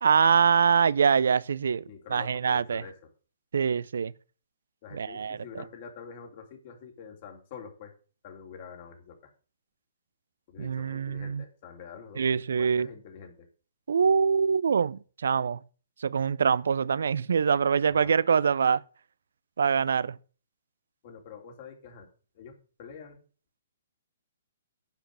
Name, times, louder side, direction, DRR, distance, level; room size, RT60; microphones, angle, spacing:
voice 1, 0.0-1.8 2.1-2.8 3.5-4.1 4.9-5.4 10.6-11.4 12.2-12.9 13.9-15.6 16.0-18.8 19.6-20.2, right 6 dB, 70° right, 0.5 m, -24 dB
voice 2, 1.9-3.1 4.8-7.9 8.2-9.3 10.5-13.5 17.9-18.2 21.0-22.1 22.3-23.2, left 6 dB, 45° left, 3.5 m, -46 dB
10.0 x 5.8 x 8.4 m
hypercardioid pair, 130°, 0 cm